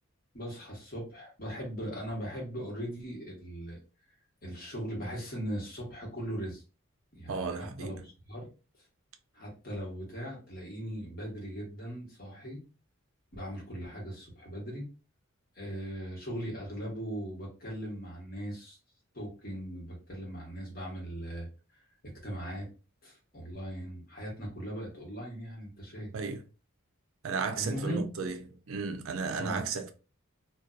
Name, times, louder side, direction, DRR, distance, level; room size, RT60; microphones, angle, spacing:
voice 1, 0.3-3.8 4.4-6.6 7.1-8.5 9.3-12.6 13.3-14.9 15.5-18.8 19.1-21.5 21.7-21.8 22.2-22.7 23.0-26.1 27.5-28.0 29.3-29.6, equal, 45° left, 1.2 m, -39 dB
voice 2, 7.3-8.0 26.1-26.4 27.2-28.4 28.7-29.9, right 5 dB, 70° right, 0.4 m, -34 dB
2.6 x 2.2 x 2.3 m
head